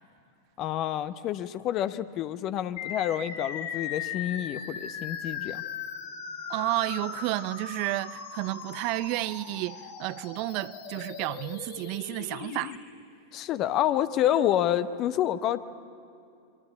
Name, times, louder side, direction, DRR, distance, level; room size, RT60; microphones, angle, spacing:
voice 1, 0.6-5.6 13.3-15.8, left 11 dB, 35° left, 0.9 m, -28 dB
sound 1, 2.8-12.8, left 7 dB, 55° left, 4.5 m, -38 dB
voice 2, 6.5-12.8, right 19 dB, 45° right, 0.6 m, -31 dB
27.5 x 24.5 x 8.5 m
figure-of-eight pair, 90°, 0 cm